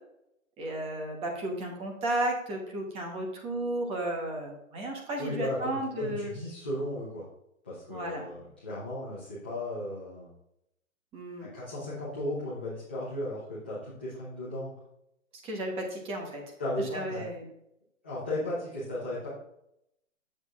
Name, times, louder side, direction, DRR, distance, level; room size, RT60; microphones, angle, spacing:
voice 1, 0.6-6.3 7.9-8.2 11.1-11.5 15.4-16.4 16.8-17.5, right 1 dB, 15° right, 2 dB, 1.0 m, -33 dB
voice 2, 5.2-7.3 7.6-10.3 11.4-14.7 16.6-17.3 18.0-19.3, left 1 dB, 10° left, -10 dB, 0.4 m, -35 dB
7.6 x 7.5 x 2.4 m, 0.79 s
hypercardioid pair, 145°, 40 cm